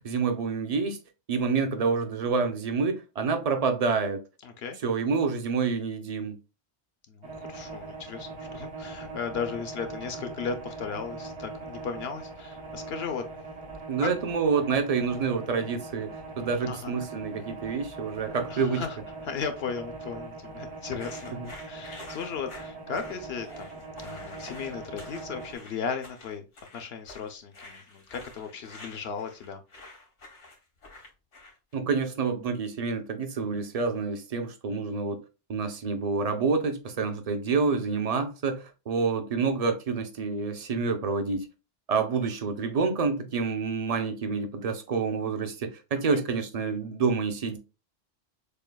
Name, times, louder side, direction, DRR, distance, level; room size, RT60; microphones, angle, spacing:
voice 1, 0.0-1.0 1.3-4.2 4.8-6.3 13.9-16.1 16.4-18.8 21.4-21.5 31.7-35.2 35.5-41.5 41.9-47.6, right 5 dB, 40° right, 0.6 m, -28 dB
voice 2, 4.4-4.8 7.1-13.2 14.0-14.1 15.2-15.3 16.6-16.9 18.5-19.0 19.2-21.4 21.6-23.7 24.0-26.4 26.7-29.6, left 6 dB, 65° left, 0.8 m, -36 dB
sound 1, 7.2-25.6, right 3 dB, 75° right, 1.4 m, -41 dB
sound 2, 20.9-31.7, left 2 dB, 90° left, 1.6 m, -48 dB
6.6 x 2.3 x 2.2 m
omnidirectional pair, 1.2 m